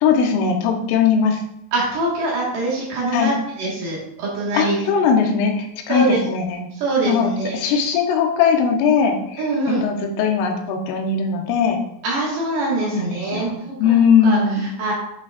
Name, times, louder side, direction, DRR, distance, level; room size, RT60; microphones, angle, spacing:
voice 1, 0.0-1.4 3.1-3.3 4.5-6.7 7.1-11.8 12.8-14.6, left 6 dB, 85° left, 2 dB, 3.5 m, -19 dB
voice 2, 1.7-4.9 5.9-6.2 6.8-7.7 9.4-9.9 12.0-14.9, right 2 dB, 60° right, -5 dB, 3.1 m, -24 dB
11.0 x 6.1 x 2.5 m, 0.78 s
omnidirectional pair, 5.7 m